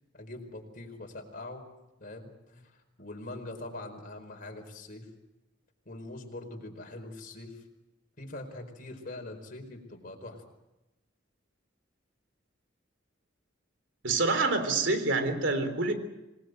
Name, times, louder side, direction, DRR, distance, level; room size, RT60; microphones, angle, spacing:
voice 1, 0.1-1.7 2.0-5.1 5.8-7.6 8.2-10.4, left 2 dB, 45° left, 3 dB, 4.9 m, -43 dB
voice 2, 14.0-15.9, right 3 dB, 70° right, 8 dB, 3.7 m, -27 dB
26.5 x 20.0 x 8.1 m, 0.97 s
head